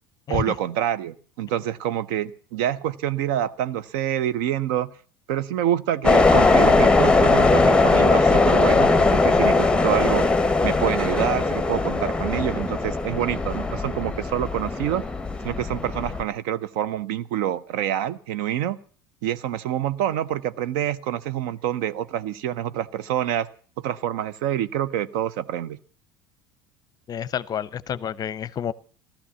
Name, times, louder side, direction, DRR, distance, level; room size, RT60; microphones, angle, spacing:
voice 1, 0.3-4.9 5.3-10.2 10.6-15.0 15.4-18.8 19.2-23.5 23.8-25.8, right 11 dB, 60° right, 0.7 m, -27 dB
sound 1, 6.0-16.2, left 3 dB, 10° left, 0.9 m, -20 dB
voice 2, 27.1-28.7, left 9 dB, 35° left, 0.7 m, -29 dB
15.0 x 13.5 x 7.0 m
figure-of-eight pair, 70°, 12 cm